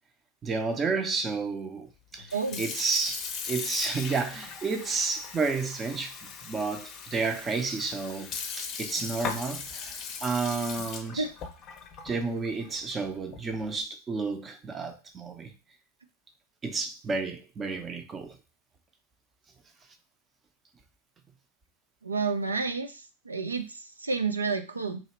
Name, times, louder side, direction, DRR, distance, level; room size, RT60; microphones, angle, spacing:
voice 1, 0.4-2.3 2.6-11.3 12.0-15.5 16.6-18.4, right 4 dB, 20° right, 0.6 m, -31 dB
Sink (filling or washing) / Fill (with liquid), 2.2-13.7, left 5 dB, 30° left, 0.6 m, -39 dB
voice 2, 2.3-2.6 11.2-11.3 22.0-25.0, right 4 dB, 80° right, 0.4 m, -30 dB
3.0 x 2.7 x 4.4 m
figure-of-eight pair, 90°, 0 cm